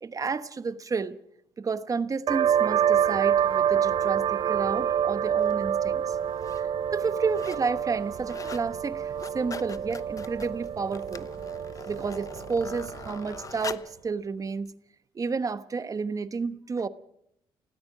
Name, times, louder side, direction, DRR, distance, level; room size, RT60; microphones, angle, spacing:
voice 1, 0.0-1.2 1.6-6.2 6.6-6.7 6.9-11.3 11.9-14.7 15.1-16.9, right 5 dB, 35° right, 1.1 m, -31 dB
sound 1, 2.3-13.6, right 9 dB, 55° right, 0.7 m, -27 dB
sound 2, 5.4-5.5 6.2-6.6 7.0-7.7 8.0-8.7 9.0-14.0 14.7-14.8, left 5 dB, 35° left, 0.9 m, -43 dB
29.5 x 18.0 x 5.0 m
cardioid pair, 90°, 10 cm